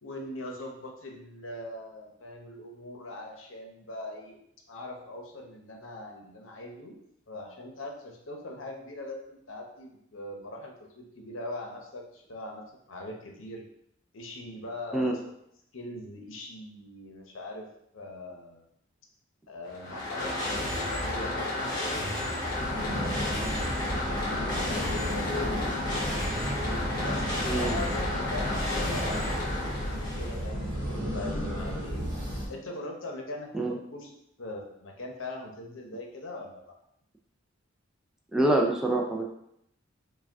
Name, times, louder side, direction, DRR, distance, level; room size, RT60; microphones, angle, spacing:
voice 1, 0.0-4.4 4.7-7.0 7.3-13.6 14.1-15.2 15.7-17.7 17.9-18.6 19.5-20.3 20.6-22.7 23.1-26.1 27.0-32.0 32.5-34.1 34.4-36.7, left 2 dB, 75° left, 1 dB, 0.8 m, -41 dB
sound 1, 19.6-30.5, left 1 dB, 20° left, 1.2 m, -32 dB
sound 2, 22.5-32.4, equal, 20° right, 1.3 m, -33 dB
voice 2, 38.3-39.2, right 1 dB, 5° right, -1 dB, 0.4 m, -25 dB
4.8 x 2.3 x 3.4 m, 0.75 s
head